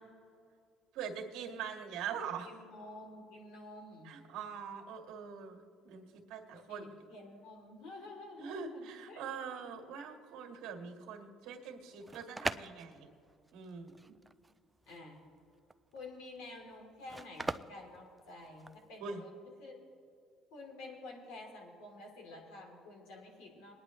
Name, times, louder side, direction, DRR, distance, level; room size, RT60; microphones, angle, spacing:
voice 1, 0.9-2.5 4.0-7.0 8.4-13.1 13.5-14.2 19.0-19.2, right 6 dB, 85° right, 2 dB, 1.9 m, -43 dB
voice 2, 2.4-4.1 6.5-9.2 14.8-15.2 15.9-19.3 19.6-19.8 20.5-23.7, left 2 dB, 90° left, 0 dB, 3.1 m, -50 dB
sound 1, 11.8-18.9, right 2 dB, 10° right, 0.4 m, -42 dB
22.0 x 10.0 x 3.2 m, 2.3 s
cardioid pair, 95°, 0 cm